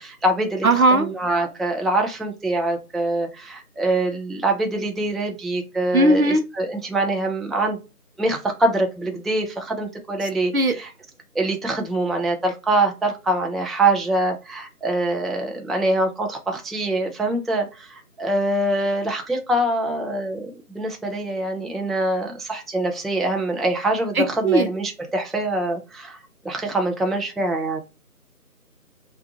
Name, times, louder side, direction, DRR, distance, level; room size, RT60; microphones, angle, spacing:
voice 1, 0.0-7.8 8.2-10.9 11.3-26.2 26.4-27.8, right 2 dB, ahead, 0.4 m, -24 dB
voice 2, 0.6-1.1 5.9-6.4 10.5-10.7 24.2-24.7, right 2 dB, 65° right, 0.6 m, -17 dB
2.3 x 2.2 x 2.7 m
figure-of-eight pair, 175°, 47 cm